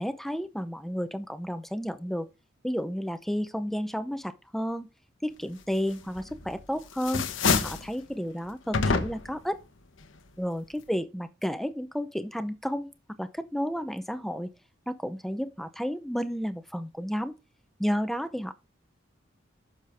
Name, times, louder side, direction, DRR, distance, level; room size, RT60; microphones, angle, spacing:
voice 1, 0.0-2.3 2.6-4.9 5.2-9.6 10.4-12.9 13.2-14.5 14.9-17.4 17.8-18.5, equal, ahead, 0.7 m, -32 dB
sound 1, 6.2-6.6 6.9-7.9 8.7-9.4, left 4 dB, 80° left, 1.1 m, -27 dB
9.9 x 6.8 x 3.5 m
head